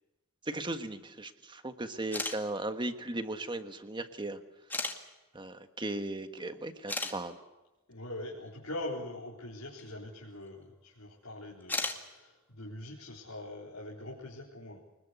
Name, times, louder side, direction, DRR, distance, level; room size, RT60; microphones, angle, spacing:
voice 1, 0.4-4.4 5.3-7.4, right 2 dB, 20° right, 8 dB, 1.5 m, -37 dB
sound 1, 2.0-2.4 3.4-3.5 4.7-5.0 6.4-6.5 6.9-7.1 9.8-9.9 11.6-12.0, left 2 dB, 10° left, 2.0 m, -33 dB
voice 2, 7.9-14.8, left 1 dB, 90° left, -3 dB, 4.2 m, -43 dB
25.0 x 21.0 x 8.2 m, 1.0 s
head